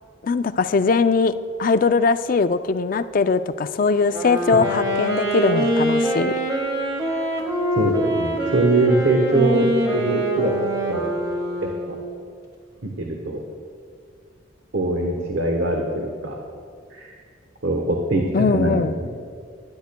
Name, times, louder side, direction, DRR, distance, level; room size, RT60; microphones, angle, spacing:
voice 1, 0.2-1.3 1.6-6.3 18.3-18.9, left 4 dB, 45° left, 11 dB, 0.3 m, -20 dB
Wind instrument woodwind instrument, 4.0-12.1, right 1 dB, 20° right, 1.6 m, -24 dB
voice 2, 7.7-11.1 11.6-12.0 12.8-13.4 14.7-16.4 16.9-17.1 17.6-18.2 18.5-19.1, right 2 dB, 70° right, 1 dB, 1.1 m, -22 dB
20.5 x 10.5 x 2.2 m, 2.2 s
head